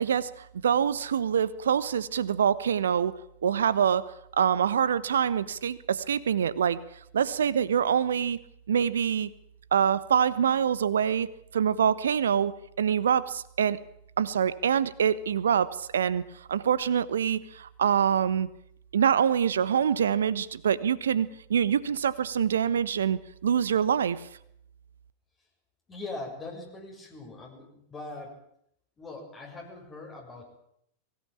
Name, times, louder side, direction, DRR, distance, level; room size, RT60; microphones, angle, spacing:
voice 1, 0.0-3.1 3.4-4.0 4.3-6.8 7.1-8.4 8.7-9.3 9.7-12.5 12.8-13.8 14.2-16.2 16.5-18.5 18.9-24.2, right 8 dB, 65° right, 17 dB, 1.2 m, -25 dB
voice 2, 25.9-28.3 29.0-30.6, left 2 dB, 20° left, -1 dB, 7.1 m, -41 dB
23.0 x 17.5 x 8.7 m, 0.72 s
figure-of-eight pair, 90°, 0 cm